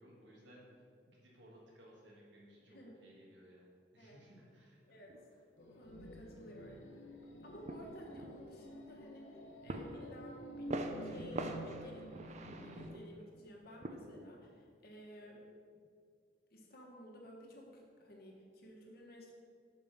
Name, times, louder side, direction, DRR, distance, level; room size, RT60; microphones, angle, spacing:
voice 1, 0.0-5.0, equal, 80° right, -4 dB, 1.5 m, -60 dB
sound 1, 5.1-5.2 6.2-6.3 6.9-7.2 7.7-8.5 9.7-10.2 10.5-13.5 13.8-14.3, right 2 dB, 40° right, 0.5 m, -44 dB
sound 2, 5.6-12.9, equal, 80° left, 0.7 m, -50 dB
voice 2, 5.6-7.0 7.4-15.5 16.5-19.3, equal, 55° left, -1 dB, 1.3 m, -54 dB
5.3 x 5.0 x 5.9 m, 2.2 s
head